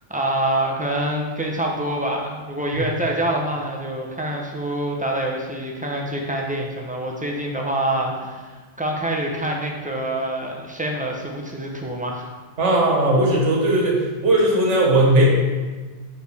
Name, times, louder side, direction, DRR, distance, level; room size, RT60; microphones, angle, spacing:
voice 1, 0.1-12.3, right 1 dB, 10° right, -1 dB, 0.6 m, -26 dB
voice 2, 12.6-15.3, right 1 dB, 80° right, -1 dB, 1.5 m, -18 dB
6.6 x 4.8 x 3.4 m, 1.3 s
omnidirectional pair, 1.2 m